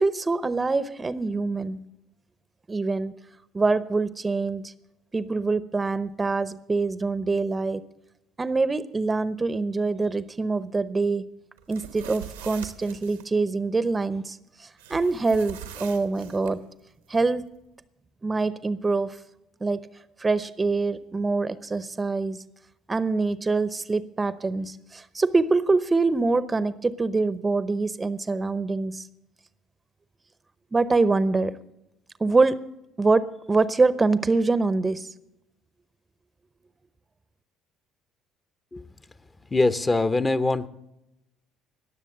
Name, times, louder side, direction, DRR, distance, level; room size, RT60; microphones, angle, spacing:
voice 1, 0.0-1.9 2.7-3.1 3.5-4.7 5.1-7.8 8.4-11.3 11.7-16.7 17.1-17.5 18.2-19.2 19.6-19.9 20.2-22.4 22.9-29.1 30.7-31.6 32.2-32.7 33.0-35.1, right 3 dB, 25° right, 16 dB, 0.7 m, -25 dB
sound 1, 11.6-13.3 14.8-16.5, right 10 dB, 85° right, 1.1 m, -42 dB
voice 2, 39.5-40.7, left 2 dB, 25° left, 13 dB, 0.8 m, -22 dB
19.0 x 7.2 x 6.5 m, 0.89 s
hypercardioid pair, 60°, 0 cm